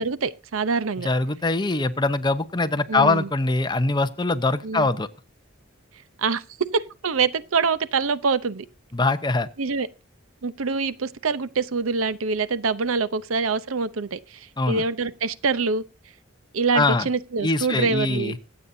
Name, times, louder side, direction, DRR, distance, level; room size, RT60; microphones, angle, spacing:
voice 1, 0.0-1.1 2.9-3.3 4.6-4.9 6.2-6.4 6.7-8.7 9.6-9.9 10.4-15.8 16.5-18.4, right 4 dB, 90° right, 0.7 m, -25 dB
voice 2, 1.0-5.1 8.9-9.5 14.6-14.8 16.7-17.1 17.4-18.4, left 3 dB, 20° left, 0.8 m, -23 dB
25.0 x 8.4 x 2.7 m
head